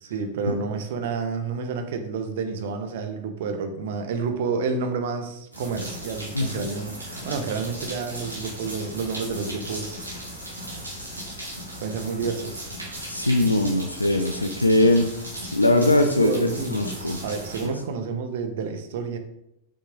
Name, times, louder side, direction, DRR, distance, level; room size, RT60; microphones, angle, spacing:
voice 1, 0.0-10.1 11.8-12.7 15.7-19.2, right 5 dB, 55° right, 7 dB, 1.0 m, -30 dB
sound 1, 5.5-17.7, equal, 85° right, 2.5 m, -37 dB
voice 2, 13.1-15.2 15.5-17.2 17.6-17.7, left 1 dB, 85° left, 5 dB, 0.5 m, -21 dB
6.4 x 6.3 x 3.7 m, 0.81 s
figure-of-eight pair, 90°, 0 cm